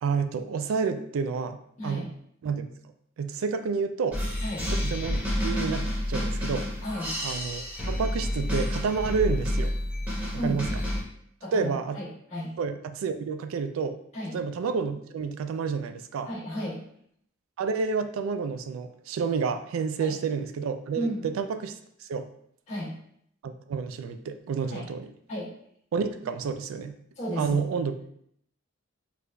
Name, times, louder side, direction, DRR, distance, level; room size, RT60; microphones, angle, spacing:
voice 1, 0.0-2.1 2.4-2.7 3.2-4.2 4.7-6.7 7.2-9.7 10.4-10.7 11.5-12.0 12.6-14.0 14.3-16.3 17.6-21.7 22.0-22.3 23.4-25.1 25.9-27.0 27.4-27.9, right 5 dB, 80° right, 9 dB, 0.3 m, -29 dB
sound 1, 4.1-11.0, left 1 dB, 5° right, 0.9 m, -29 dB
voice 2, 6.8-7.1 10.4-10.6 11.4-12.5 14.1-14.4 16.2-16.8 20.0-20.1 20.9-21.2 22.7-22.9 24.7-24.8 25.3-25.5 27.1-27.6, equal, 35° left, -11 dB, 1.2 m, -33 dB
4.6 x 2.5 x 2.2 m, 0.68 s
head